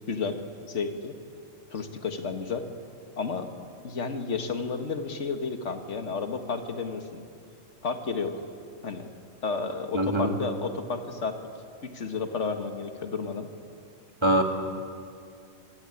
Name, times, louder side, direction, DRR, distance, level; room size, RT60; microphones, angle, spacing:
voice 1, 0.1-0.4 0.7-1.2 1.7-2.6 3.2-3.5 3.8-7.2 7.8-8.3 8.8-9.1 9.4-11.4 11.8-13.5, left 4 dB, 65° left, 7 dB, 1.9 m, -31 dB
voice 2, 9.9-10.3 14.2-14.4, right 1 dB, 20° right, 4 dB, 2.5 m, -23 dB
26.0 x 22.0 x 9.7 m, 2.4 s
omnidirectional pair, 1.3 m